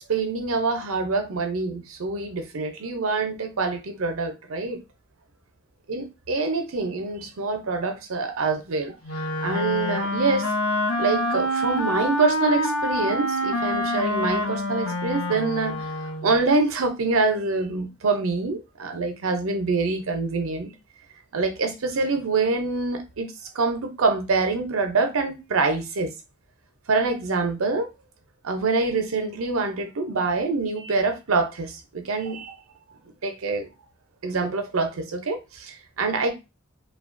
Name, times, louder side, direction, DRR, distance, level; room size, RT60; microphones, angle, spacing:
voice 1, 0.1-4.8 5.9-8.9 9.4-10.5 11.0-15.9 16.2-20.7 21.3-26.1 26.9-27.9 28.4-32.5 33.2-33.7 34.2-36.3, right 3 dB, 90° right, 0.6 m, -25 dB
Wind instrument woodwind instrument, 9.0-16.4, left 1 dB, 90° left, 0.6 m, -26 dB
2.8 x 2.2 x 2.5 m
head